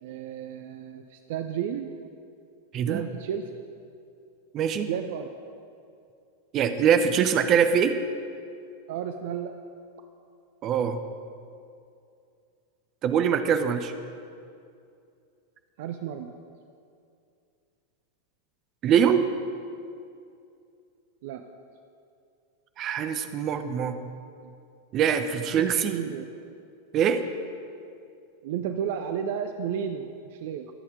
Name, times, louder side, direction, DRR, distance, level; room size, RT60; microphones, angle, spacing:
voice 1, 0.0-1.9 2.9-3.6 4.9-5.3 8.9-9.5 15.8-16.4 21.2-21.4 25.6-25.7 25.9-26.2 28.4-30.7, right 8 dB, 50° right, 7 dB, 0.7 m, -32 dB
voice 2, 4.5-4.9 6.5-8.0 10.6-11.0 13.0-13.9 18.8-19.3 22.8-24.0 24.9-26.0 26.9-27.2, right 8 dB, 35° right, 8 dB, 1.0 m, -23 dB
23.0 x 8.5 x 5.2 m, 2.5 s
figure-of-eight pair, 90°, 0 cm